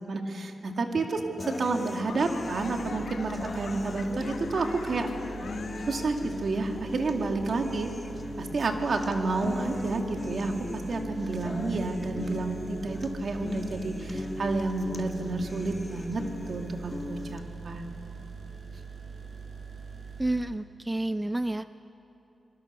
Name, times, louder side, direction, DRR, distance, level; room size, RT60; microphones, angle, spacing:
voice 1, 0.0-5.1 5.9-7.9 8.4-17.9, right 3 dB, 65° right, 3 dB, 2.2 m, -30 dB
sound 1, 1.4-17.4, left 2 dB, 35° left, 1.6 m, -39 dB
Laughter / Clapping / Crowd, 1.6-6.4 6.7-7.2 7.8-7.9, left 5 dB, 80° left, 1.4 m, -44 dB
sound 2, 2.0-20.4, right 6 dB, 80° right, 5.2 m, -43 dB
voice 2, 20.2-21.7, right 1 dB, 15° right, 12 dB, 0.5 m, -29 dB
26.5 x 21.0 x 6.8 m, 3.0 s
cardioid pair, 65°, 0 cm